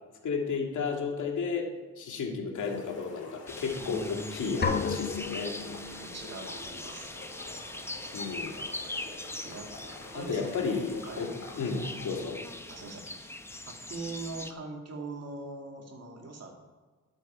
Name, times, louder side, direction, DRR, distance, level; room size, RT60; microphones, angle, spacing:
voice 1, 0.2-1.7 2.0-5.5 8.1-8.5 10.1-12.4, left 5 dB, 65° left, 1 dB, 2.3 m, -33 dB
sound 1, 2.5-12.2, left 2 dB, 50° left, 3.5 m, -47 dB
sound 2, 3.5-14.5, left 2 dB, 10° left, 0.8 m, -42 dB
voice 2, 3.8-4.7 5.6-7.1 9.4-9.7 10.1-11.3 12.7-13.3 13.6-16.6, right 3 dB, 50° right, 2 dB, 2.4 m, -42 dB
sound 3, 4.6-6.4, left 5 dB, 30° left, 1.2 m, -32 dB
12.5 x 8.0 x 4.5 m, 1.4 s
cardioid pair, 90°, 32 cm